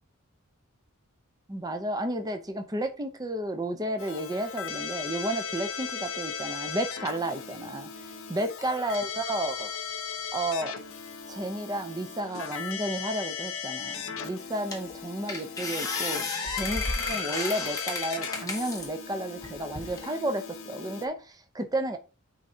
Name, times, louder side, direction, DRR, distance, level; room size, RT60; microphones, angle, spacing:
voice 1, 1.5-7.9 8.3-9.7 10.3-10.7 11.3-22.0, right 1 dB, 15° right, 0.6 m, -32 dB
Keyboard (musical), 4.0-21.1, left 6 dB, 60° left, 0.9 m, -37 dB
sound 1, 14.1-14.2 14.7-15.0 15.3-18.9 19.4-20.1, left 3 dB, 15° left, 1.3 m, -33 dB
9.6 x 3.9 x 2.8 m
head